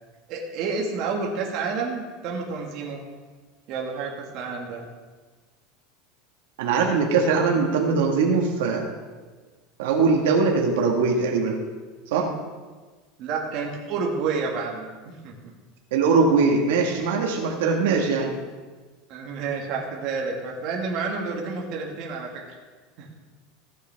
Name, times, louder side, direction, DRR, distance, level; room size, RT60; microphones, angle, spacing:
voice 1, 0.3-3.0 3.7-4.9 13.2-15.5 19.1-22.3 23.0-23.1, right 4 dB, 45° right, -1 dB, 1.8 m, -29 dB
voice 2, 6.6-8.8 9.8-11.6 12.1-12.3 15.9-18.4, right 4 dB, 85° right, 0 dB, 1.7 m, -21 dB
15.5 x 8.2 x 3.5 m, 1.4 s
supercardioid pair, 160°, 0 cm